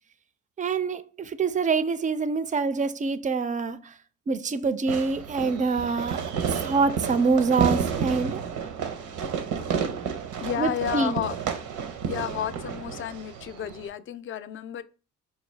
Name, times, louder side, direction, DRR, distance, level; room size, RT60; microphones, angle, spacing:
voice 1, 0.6-3.9 4.3-6.2 6.6-8.4 10.6-11.2, right 4 dB, 25° right, 0.4 m, -25 dB
Fireworks, 4.9-13.9, right 7 dB, 85° right, 0.7 m, -31 dB
voice 2, 10.4-11.4 12.1-14.8, left 9 dB, 45° left, 0.4 m, -32 dB
4.6 x 2.3 x 3.2 m
cardioid pair, 90°, 30 cm